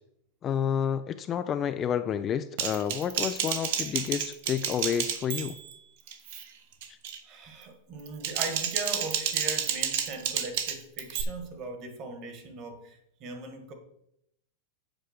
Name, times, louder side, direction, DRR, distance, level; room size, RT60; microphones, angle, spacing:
voice 1, 0.4-5.6, left 8 dB, 20° left, 11 dB, 0.3 m, -29 dB
Typing, 2.6-5.7 6.1-6.4 6.8-7.2 8.0-11.2, right 9 dB, 55° right, 1.1 m, -31 dB
voice 2, 3.6-4.0 7.2-13.7, right 3 dB, 30° right, 6 dB, 1.4 m, -39 dB
8.2 x 4.9 x 6.4 m, 0.77 s
supercardioid pair, 160°, 0 cm